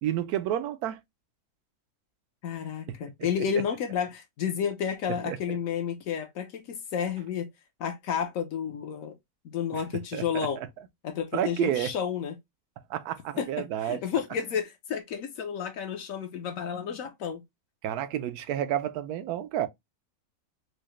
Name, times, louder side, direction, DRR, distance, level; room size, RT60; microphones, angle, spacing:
voice 1, 0.0-1.0 2.9-3.1 5.3-5.6 9.7-9.8 10.1-10.5 11.3-11.9 12.9-14.0 17.8-19.7, right 11 dB, 85° right, 1.1 m, -30 dB
voice 2, 2.4-7.5 7.8-9.1 9.4-10.6 11.0-12.3 13.4-17.4, left 8 dB, 65° left, 1.0 m, -31 dB
4.7 x 2.1 x 3.0 m
omnidirectional pair, 1.6 m